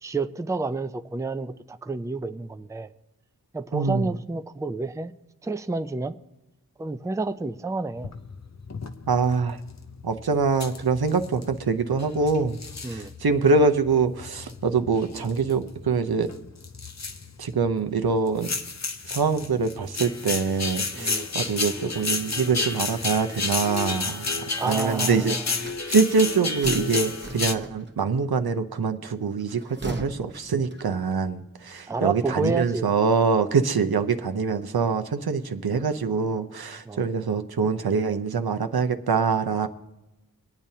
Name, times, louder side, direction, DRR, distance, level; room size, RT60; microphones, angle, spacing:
voice 1, 0.0-2.9 3.5-5.1 5.4-6.1 6.8-8.1 12.8-13.1 20.9-21.3 24.6-25.7 31.9-32.9 36.9-37.0, right 3 dB, 10° right, 0.4 m, -30 dB
voice 2, 3.7-4.1 9.1-9.6 10.0-12.6 12.9-16.3 17.4-18.5 19.1-24.3 24.6-25.4 25.9-39.7, right 5 dB, 80° right, 0.7 m, -24 dB
sound 1, 8.0-27.6, left 4 dB, 45° left, 0.7 m, -32 dB
sound 2, 25.5-28.1 29.4-31.2, right 2 dB, 30° right, 1.0 m, -36 dB
23.0 x 8.8 x 2.8 m
wide cardioid pair, 45°, 37 cm